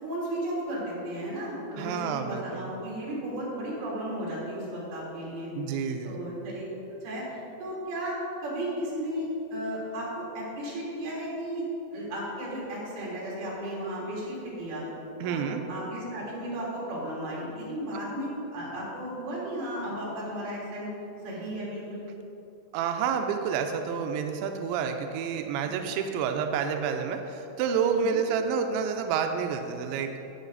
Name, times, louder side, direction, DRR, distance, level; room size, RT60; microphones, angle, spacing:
voice 1, 0.0-5.5 6.0-6.7 7.0-11.6 11.9-14.8 15.2-20.9 21.2-22.0 27.8-28.2, right 1 dB, 50° right, -6 dB, 4.5 m, -34 dB
voice 2, 1.8-2.7 5.6-6.2 15.2-15.6 22.7-30.2, right 6 dB, 85° right, 5 dB, 2.5 m, -29 dB
18.5 x 6.6 x 4.0 m, 2.9 s
omnidirectional pair, 5.9 m